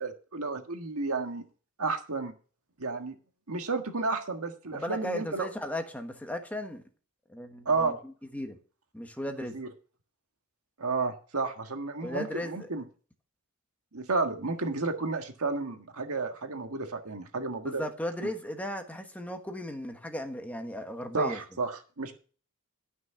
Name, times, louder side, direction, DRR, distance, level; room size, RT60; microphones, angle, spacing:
voice 1, 0.0-1.5 1.8-2.3 2.8-3.2 3.5-5.5 7.7-8.0 9.5-9.7 10.8-12.8 13.9-17.8 21.1-21.7 22.0-22.2, right 3 dB, 85° right, 1.6 m, -31 dB
voice 2, 4.7-6.8 7.3-8.6 8.9-9.6 12.0-12.7 17.6-21.4, left 1 dB, 5° left, 1.3 m, -36 dB
13.0 x 6.2 x 5.8 m
head